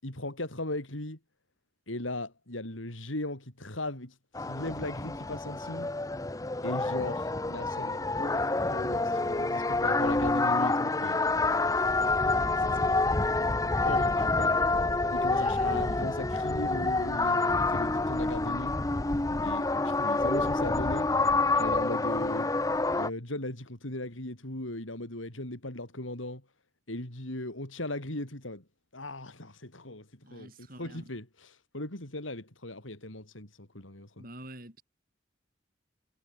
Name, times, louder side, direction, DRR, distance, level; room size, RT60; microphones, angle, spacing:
voice 1, 0.0-1.2 1.9-5.9 6.6-11.2 12.5-13.0 13.9-14.8 15.1-18.8 19.4-21.1 21.5-22.5 22.9-26.4 26.9-28.6 28.9-34.2, left 1 dB, 90° left, 5.1 m, -38 dB
sound 1, 4.3-23.1, left 3 dB, 15° left, 0.7 m, -28 dB
voice 2, 15.3-16.1 30.2-31.1 34.2-34.8, right 1 dB, 45° right, 6.9 m, -47 dB
head